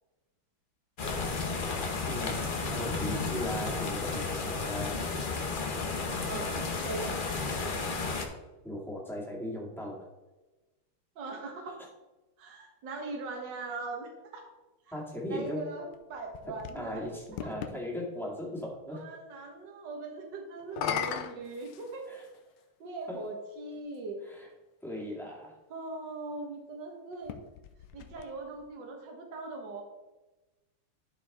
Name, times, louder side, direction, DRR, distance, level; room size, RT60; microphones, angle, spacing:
sound 1, 1.0-8.3, left 4 dB, 50° left, 0.5 m, -32 dB
voice 1, 2.7-5.0 8.6-10.1 14.9-15.7 16.7-19.1 22.1-22.3 23.1-23.3 24.2-24.5 24.8-25.6, left 1 dB, ahead, -4 dB, 1.7 m, -38 dB
voice 2, 11.2-11.8 12.4-14.4 14.9-15.0 15.3-17.1 18.9-22.1 22.8-24.2 25.7-27.3 27.9-29.8, right 3 dB, 60° right, 2 dB, 1.9 m, -40 dB
sound 2, 15.9-17.8 20.6-22.4 23.3-23.4 27.1-28.7, left 8 dB, 75° left, 1.3 m, -38 dB
12.0 x 4.7 x 3.6 m, 1.1 s
omnidirectional pair, 2.3 m